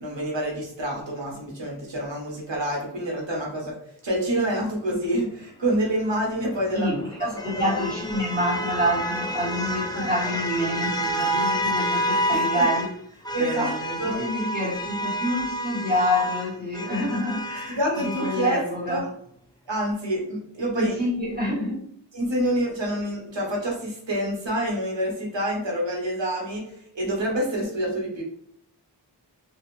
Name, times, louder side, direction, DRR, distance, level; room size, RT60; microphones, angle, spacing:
voice 1, 0.0-3.8 4.0-6.9 7.2-7.8 9.9-10.1 12.3-12.6 13.3-13.7 14.0-14.2 17.7-19.0 19.7-20.9 22.1-28.2, right 1 dB, 90° right, -2 dB, 1.0 m, -27 dB
sound 1, 6.3-12.9 13.2-18.6, equal, 10° left, 0.3 m, -29 dB
voice 2, 6.7-19.1 20.7-21.8, equal, 20° right, -7 dB, 1.4 m, -27 dB
2.5 x 2.4 x 3.0 m, 0.68 s
wide cardioid pair, 70°, 43 cm